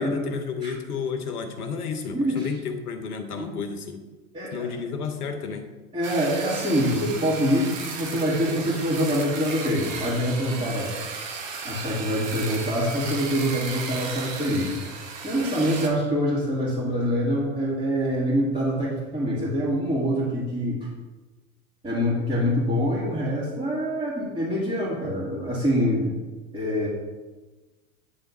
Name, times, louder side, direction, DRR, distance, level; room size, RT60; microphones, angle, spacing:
voice 1, 0.0-4.0 4.5-5.7 10.6-10.7, left 5 dB, 75° left, 7 dB, 1.0 m, -32 dB
voice 2, 2.1-2.5 3.4-3.6 4.3-4.7 5.9-10.9 11.6-14.7 15.2-20.9 21.8-26.2 26.5-26.9, equal, 15° right, -10 dB, 2.0 m, -25 dB
sound 1, 6.0-15.9, right 5 dB, 55° right, 1.2 m, -35 dB
8.8 x 3.5 x 4.1 m, 1.3 s
hypercardioid pair, 90°, 45 cm